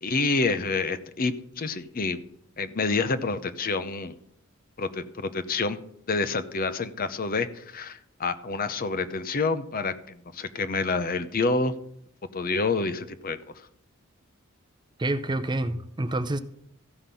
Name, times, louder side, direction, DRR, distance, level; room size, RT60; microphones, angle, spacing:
voice 1, 0.0-2.2 2.6-4.1 4.8-5.8 6.1-11.7 12.3-13.4, left 3 dB, 45° left, 0.7 m, -28 dB
voice 2, 15.0-16.4, right 1 dB, 20° right, 0.6 m, -28 dB
14.5 x 5.7 x 6.9 m
head